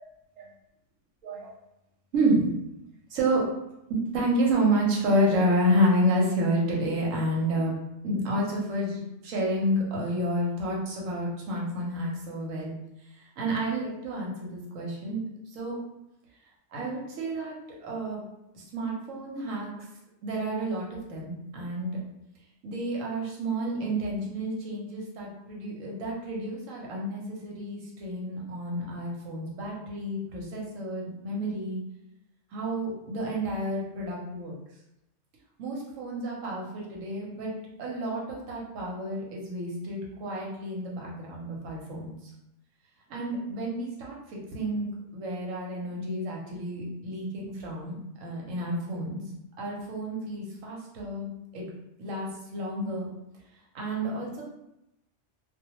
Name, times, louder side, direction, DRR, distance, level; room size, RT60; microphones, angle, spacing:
voice 1, 2.1-2.5 3.1-3.4 3.9-7.7 8.0-12.7 13.1-15.2 15.5-15.8 16.7-17.5 17.8-18.2 18.5-19.7 20.2-22.0 22.6-31.8 32.5-34.5 35.6-37.5 37.8-42.2 43.1-49.2 49.6-51.3 51.5-51.6 52.0-53.1 53.7-54.4, right 1 dB, 80° right, -2 dB, 1.1 m, -30 dB
2.3 x 2.2 x 2.9 m, 0.87 s
omnidirectional pair, 1.3 m